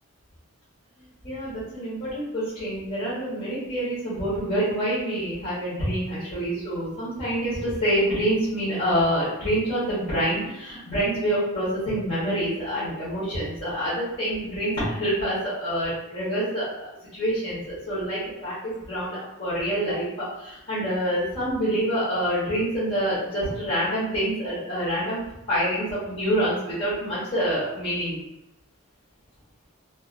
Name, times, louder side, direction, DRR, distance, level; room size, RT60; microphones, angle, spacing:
voice 1, 1.2-25.2 25.5-28.2, equal, 45° left, -11 dB, 1.0 m, -27 dB
2.5 x 2.4 x 2.4 m, 0.91 s
head